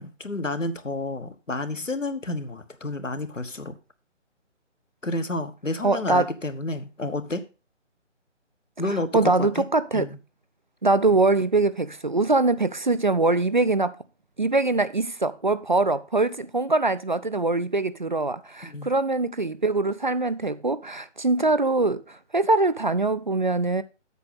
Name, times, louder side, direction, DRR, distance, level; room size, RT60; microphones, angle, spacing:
voice 1, 0.0-3.8 5.0-7.4 8.8-9.6 9.9-10.2 18.6-18.9, left 2 dB, 85° left, 1.4 m, -30 dB
voice 2, 5.8-6.3 9.1-10.1 10.8-14.0 14.4-23.8, right 3 dB, 40° right, 0.4 m, -23 dB
8.1 x 6.4 x 5.6 m
figure-of-eight pair, 145°, 37 cm